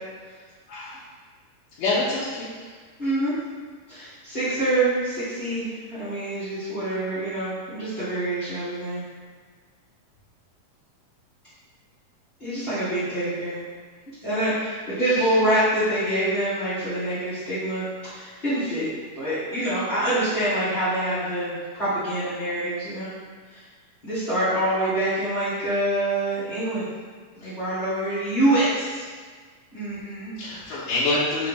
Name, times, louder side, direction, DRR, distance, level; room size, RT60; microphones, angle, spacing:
voice 1, 0.7-1.0 1.8-2.5 15.0-15.3 27.4-27.5 30.4-31.5, left 2 dB, 85° left, -11 dB, 2.4 m, -26 dB
voice 2, 3.0-3.3 3.9-9.0 12.4-13.6 14.2-18.9 19.1-23.1 23.5-23.6 24.0-26.9 27.3-29.0 29.7-30.3, right 1 dB, 65° left, -15 dB, 0.6 m, -25 dB
6.0 x 2.6 x 3.3 m, 1.5 s
omnidirectional pair, 3.7 m